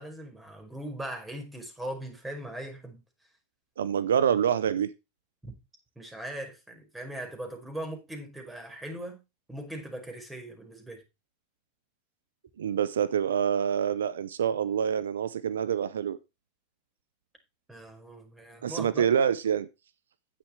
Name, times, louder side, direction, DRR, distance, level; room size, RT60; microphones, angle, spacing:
voice 1, 0.0-3.0 5.4-5.5 5.9-9.2 9.5-11.0 17.7-19.1, right 1 dB, 10° right, 5.1 m, -39 dB
voice 2, 3.8-4.9 12.6-16.2 18.6-19.7, right 8 dB, 90° right, 0.7 m, -26 dB
10.5 x 8.8 x 4.5 m
hypercardioid pair, 105°, 0 cm